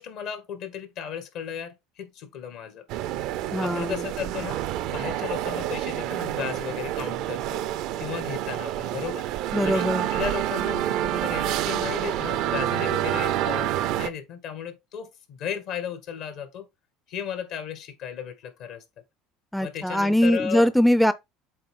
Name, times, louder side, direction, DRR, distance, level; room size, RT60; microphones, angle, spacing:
voice 1, 0.0-2.8 3.6-4.6 4.9-9.3 9.6-13.7 14.0-16.7 17.1-18.8 19.6-20.7, left 8 dB, 65° left, 1.9 m, -35 dB
sound 1, 2.9-14.1, right 13 dB, 65° right, 0.6 m, -28 dB
voice 2, 3.5-4.0 9.5-10.1 19.5-21.1, equal, ahead, 0.6 m, -21 dB
7.8 x 3.8 x 3.8 m
hypercardioid pair, 75°, 0 cm